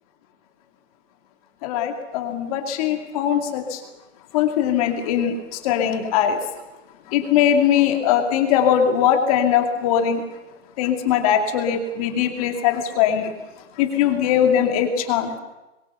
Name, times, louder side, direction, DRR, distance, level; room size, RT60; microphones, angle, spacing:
voice 1, 1.6-3.8 4.3-5.3 5.6-6.4 7.1-10.2 10.8-13.3 13.8-15.3, left 9 dB, 30° left, 4 dB, 2.6 m, -20 dB
26.5 x 23.0 x 6.8 m, 1.0 s
hypercardioid pair, 165°, 37 cm